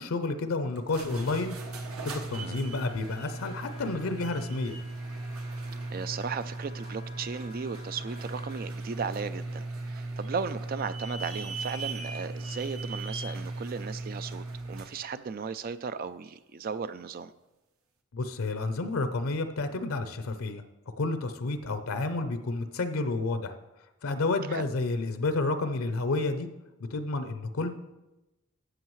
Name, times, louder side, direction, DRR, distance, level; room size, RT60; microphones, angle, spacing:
voice 1, 0.0-1.5 2.0-4.8 18.1-20.6 21.0-23.5 24.0-26.5 26.9-27.7, left 3 dB, 90° left, 9 dB, 0.6 m, -30 dB
sound 1, 0.8-15.0, right 2 dB, 90° right, 1.0 m, -37 dB
Wind instrument woodwind instrument, 2.5-8.7, left 4 dB, 60° left, 2.5 m, -54 dB
voice 2, 5.9-17.3 24.5-24.7, right 5 dB, 45° right, 13 dB, 0.4 m, -36 dB
13.0 x 7.7 x 3.1 m, 1.0 s
head